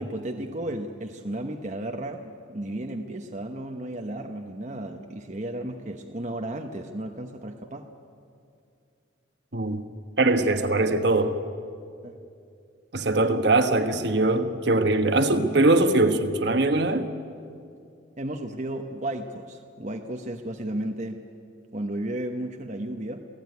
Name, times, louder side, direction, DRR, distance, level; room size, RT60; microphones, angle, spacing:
voice 1, 0.0-7.9 12.0-12.2 18.2-21.2 21.7-23.2, right 1 dB, 35° right, 4 dB, 1.1 m, -33 dB
voice 2, 9.5-9.8 10.2-11.4 12.9-17.1, right 2 dB, 55° right, 7 dB, 1.4 m, -22 dB
28.0 x 17.0 x 9.5 m, 2.5 s
head